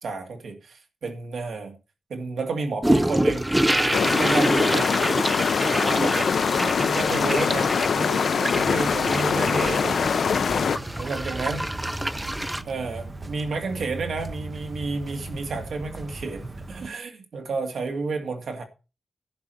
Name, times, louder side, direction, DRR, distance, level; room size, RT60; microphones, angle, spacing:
voice 1, 0.0-1.8 2.1-4.9 5.6-6.3 6.7-10.1 11.0-11.7 12.7-18.6, right 3 dB, 85° right, 2.5 m, -31 dB
sound 1, 2.8-12.6, right 1 dB, 10° right, 0.6 m, -26 dB
sound 2, 3.9-10.8, left 6 dB, 75° left, 0.5 m, -23 dB
sound 3, 8.5-16.9, right 2 dB, 25° right, 1.1 m, -39 dB
11.0 x 5.0 x 8.0 m
wide cardioid pair, 160°, 0 cm